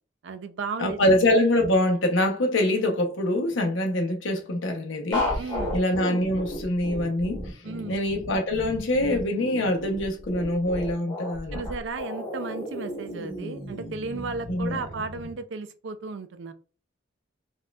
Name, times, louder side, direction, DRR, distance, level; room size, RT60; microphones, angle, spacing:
voice 1, 0.2-1.1 5.4-5.8 7.6-7.9 11.5-16.5, right 4 dB, 65° right, 0.4 m, -34 dB
voice 2, 0.8-5.4 5.7-7.6 7.9-11.6 14.5-14.8, left 1 dB, 80° left, 0.8 m, -24 dB
sound 1, 5.1-15.3, left 1 dB, 25° left, 1.7 m, -34 dB
4.2 x 2.4 x 2.2 m
head